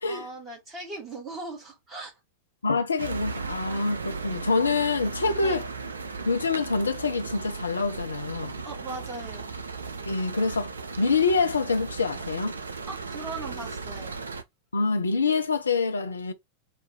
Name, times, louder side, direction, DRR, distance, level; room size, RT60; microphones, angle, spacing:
voice 1, 0.1-2.1 5.4-5.6 8.6-9.5 12.9-14.2, right 3 dB, 15° right, 2.0 m, -39 dB
voice 2, 2.6-5.7 6.2-8.6 10.1-12.6 14.7-16.3, left 4 dB, 75° left, 0.6 m, -26 dB
sound 1, 3.0-14.4, right 4 dB, 75° right, 0.5 m, -36 dB
4.2 x 2.6 x 3.7 m
figure-of-eight pair, 90°, 0 cm